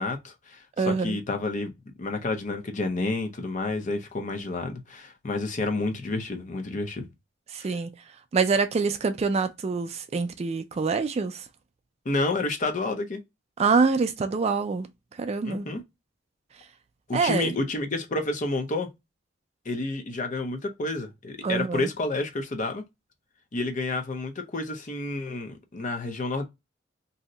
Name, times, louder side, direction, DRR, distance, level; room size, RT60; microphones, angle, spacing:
voice 1, 0.0-1.7 2.0-7.1 7.6-7.8 12.1-13.2 15.4-15.8 17.1-18.9 19.7-22.8 23.5-26.4, left 2 dB, 40° left, 0.6 m, -30 dB
voice 2, 0.8-1.2 7.5-7.9 8.3-11.4 13.6-14.9 15.2-15.7 17.1-17.5 21.4-21.9, right 4 dB, 35° right, 0.3 m, -25 dB
2.7 x 2.1 x 3.7 m
head